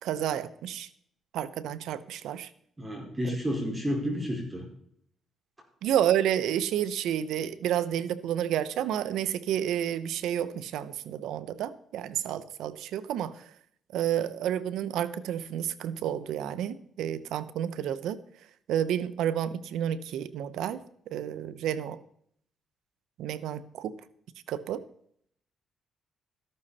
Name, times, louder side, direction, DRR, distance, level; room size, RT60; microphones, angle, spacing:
voice 1, 0.0-0.9 1.3-2.5 5.8-13.3 13.9-18.2 18.7-20.8 21.1-22.0 23.2-23.9 24.5-24.8, right 10 dB, 85° right, 15 dB, 0.8 m, -30 dB
voice 2, 2.8-4.6, equal, 15° right, 1 dB, 4.7 m, -31 dB
14.0 x 12.0 x 4.2 m, 0.67 s
cardioid pair, 90°, 0 cm